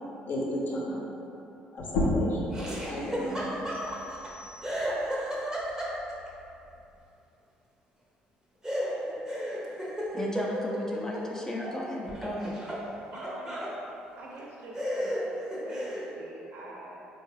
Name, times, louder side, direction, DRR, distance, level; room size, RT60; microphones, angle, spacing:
voice 1, 0.3-1.0 1.7-2.6 2.8-3.6, equal, 55° left, -3 dB, 0.8 m, -34 dB
sound 1, 1.8-7.0, left 1 dB, 85° left, 0.6 m, -34 dB
Laughter, 2.5-4.3 4.6-6.3 8.6-11.8 12.1-13.8 14.3-14.4 14.7-16.1, equal, 15° right, 0.9 m, -33 dB
sound 2, 3.7-5.2, left 2 dB, 45° right, 0.9 m, -53 dB
voice 2, 10.1-12.6, left 1 dB, 10° left, -3 dB, 0.6 m, -34 dB
voice 3, 13.1-13.6 14.2-15.2 15.6-17.1, right 2 dB, 65° right, -3 dB, 0.7 m, -45 dB
4.3 x 2.3 x 3.2 m, 2.8 s
hypercardioid pair, 55°, 4 cm